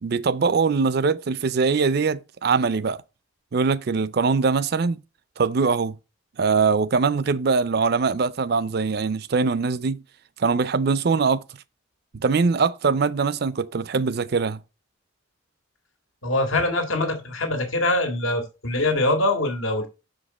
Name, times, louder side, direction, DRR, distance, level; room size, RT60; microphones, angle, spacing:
voice 1, 0.0-3.0 3.5-5.0 5.4-6.0 6.4-10.0 10.4-11.4 12.1-14.6, right 4 dB, 50° right, 0.5 m, -22 dB
voice 2, 16.2-19.9, left 2 dB, 80° left, 1.9 m, -23 dB
6.6 x 5.1 x 4.1 m
head